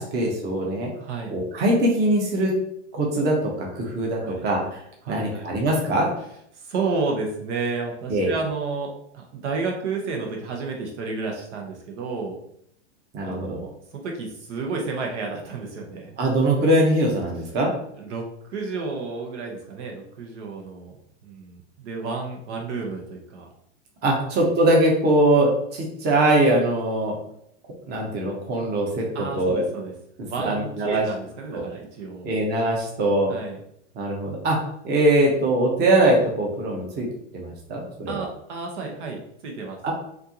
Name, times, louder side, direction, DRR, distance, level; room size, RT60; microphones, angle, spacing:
voice 1, 0.0-0.9 1.3-2.5 2.9-4.8 5.1-6.1 8.1-8.3 13.1-13.6 16.2-17.7 24.0-27.2 27.9-29.0 29.3-29.6 30.4-31.0 31.5-31.6 32.2-33.3 33.9-34.6 34.8-37.1 37.3-38.2 39.8-39.9, right 1 dB, 25° right, -1 dB, 1.0 m, -22 dB
voice 2, 1.0-1.3 4.2-4.5 5.0-5.5 6.5-12.4 13.2-16.1 17.5-17.6 18.0-18.2 18.5-23.5 29.1-29.9 30.3-32.3 33.3-33.6 38.1-39.8, right 4 dB, 65° right, 1 dB, 1.1 m, -31 dB
4.3 x 2.6 x 2.9 m, 0.71 s
supercardioid pair, 135°, 37 cm